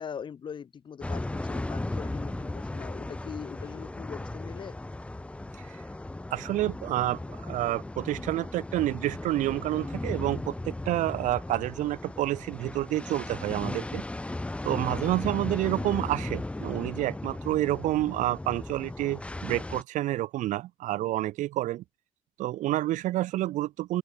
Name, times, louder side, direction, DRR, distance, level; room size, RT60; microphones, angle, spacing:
voice 1, 0.0-4.8, left 7 dB, 40° left, 6.5 m, -41 dB
sound 1, 1.0-19.8, left 2 dB, 10° left, 4.0 m, -36 dB
voice 2, 6.3-14.0 14.6-21.8 22.4-24.0, right 15 dB, 80° right, 3.6 m, -29 dB
open air
cardioid pair, 140°, 13 cm